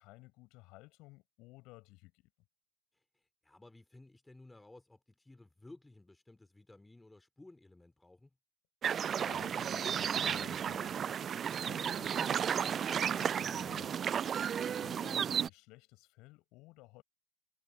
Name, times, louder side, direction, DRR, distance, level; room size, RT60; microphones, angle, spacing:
voice 1, 0.0-2.3 9.2-17.0, left 22 dB, 40° left, 6.6 m, -56 dB
voice 2, 2.9-8.4, left 2 dB, 5° left, 4.1 m, -57 dB
sound 1, 8.8-15.5, right 8 dB, 25° right, 0.4 m, -33 dB
figure-of-eight pair, 90°, 0 cm